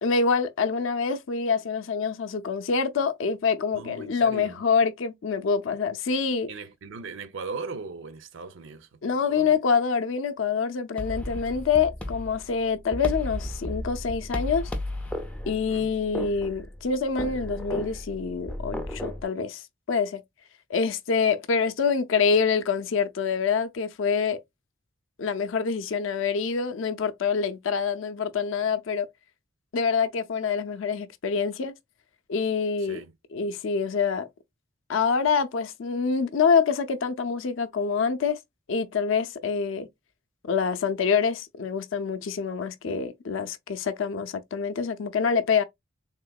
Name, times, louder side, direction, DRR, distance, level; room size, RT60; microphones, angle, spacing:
voice 1, 0.0-6.5 9.0-14.7 15.5-20.2 20.7-24.4 25.2-29.1 29.7-31.7 32.3-33.0 33.3-34.3 34.9-38.4 38.7-39.9 40.4-45.6, left 5 dB, 70° left, 0.5 m, -26 dB
voice 2, 3.7-4.6 6.5-9.0 9.3-9.5 15.7-15.9 32.8-33.1, right 4 dB, 65° right, 0.5 m, -38 dB
sound 1, 11.0-19.2, left 1 dB, 5° left, 0.3 m, -34 dB
3.6 x 2.8 x 2.2 m
head